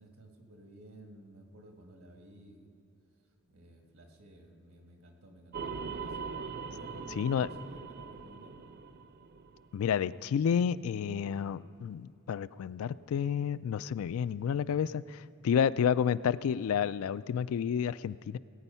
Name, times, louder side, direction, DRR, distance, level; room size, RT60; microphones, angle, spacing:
voice 1, 0.0-2.7 3.5-6.3 6.6-8.6, right 1 dB, 75° right, 3 dB, 1.7 m, -54 dB
sound 1, 5.5-10.0, right 5 dB, 45° right, 0.5 m, -41 dB
voice 2, 7.2-7.5 9.7-18.4, left 7 dB, 75° left, 16 dB, 0.3 m, -30 dB
19.5 x 9.0 x 5.6 m, 2.7 s
head